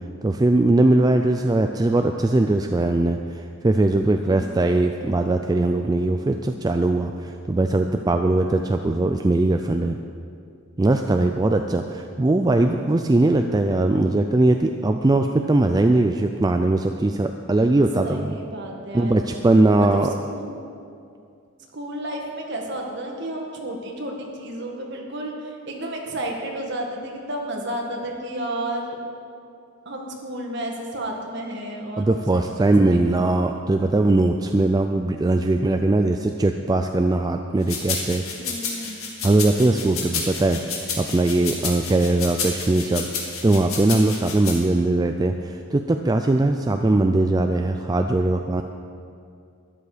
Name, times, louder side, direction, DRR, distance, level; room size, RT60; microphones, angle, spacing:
voice 1, 0.2-10.0 10.8-18.4 18.9-20.1 32.0-38.2 39.2-48.6, right 2 dB, 20° right, 5 dB, 0.3 m, -20 dB
voice 2, 4.2-4.6 18.0-19.2 19.6-19.9 20.3-20.6 21.7-29.0 29.8-32.5 32.8-33.0 38.4-39.0, right 1 dB, 55° right, 0 dB, 1.7 m, -32 dB
sound 1, 37.7-44.6, left 5 dB, 75° left, 2.2 m, -30 dB
12.5 x 11.0 x 5.0 m, 2.4 s
head